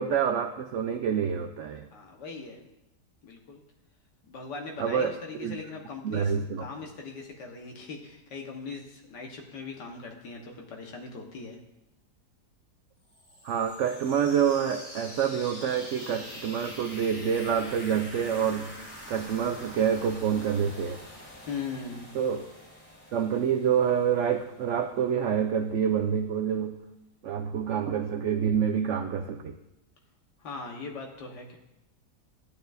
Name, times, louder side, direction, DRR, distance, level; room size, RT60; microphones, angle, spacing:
voice 1, 0.0-1.9 4.8-5.6 6.0-6.7 13.4-18.7 19.1-21.0 22.1-22.5 23.1-26.8 27.2-29.5, right 8 dB, 85° right, 7 dB, 0.6 m, -27 dB
voice 2, 1.9-2.7 3.2-3.6 4.2-11.6 21.5-22.1 30.4-31.6, left 4 dB, 85° left, 1 dB, 1.9 m, -40 dB
sound 1, 13.1-24.8, left 1 dB, 50° left, 2.3 m, -45 dB
12.0 x 9.3 x 2.6 m, 0.90 s
omnidirectional pair, 1.8 m